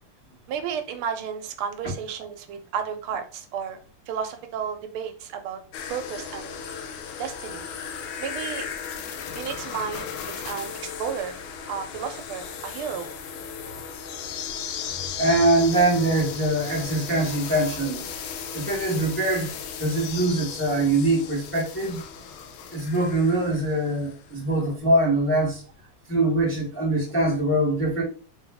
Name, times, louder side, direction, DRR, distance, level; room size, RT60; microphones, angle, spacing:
voice 1, 0.5-3.8 4.1-5.6 5.9-6.6 7.2-7.7 8.2-8.7 9.3-10.1 10.4-11.4 11.7-13.1, right 7 dB, 80° right, 1.4 m, -32 dB
sound 1, 5.7-24.3 24.5-24.6, left 7 dB, 80° left, 1.4 m, -36 dB
voice 2, 15.1-18.0 18.5-19.5 19.8-22.0 22.7-25.6 26.1-28.0, right 1 dB, 10° left, 0.7 m, -23 dB
3.7 x 2.3 x 3.4 m
omnidirectional pair, 2.4 m